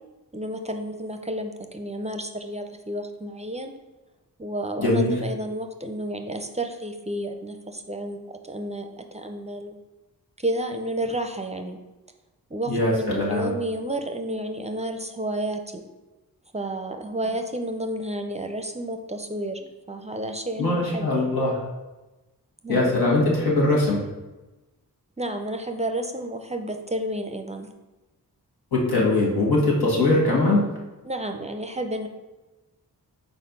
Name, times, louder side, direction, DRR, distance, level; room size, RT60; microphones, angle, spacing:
voice 1, 0.3-3.7 4.4-9.8 10.4-11.8 12.5-15.8 16.5-21.2 22.6-22.9 25.2-27.7 31.0-32.1, right 1 dB, 20° right, 6 dB, 0.5 m, -31 dB
voice 2, 4.8-5.1 12.7-13.5 20.6-21.6 22.7-24.0 28.7-30.6, left 2 dB, 90° left, -4 dB, 1.7 m, -21 dB
4.4 x 4.3 x 5.3 m, 1.1 s
wide cardioid pair, 95°, 37 cm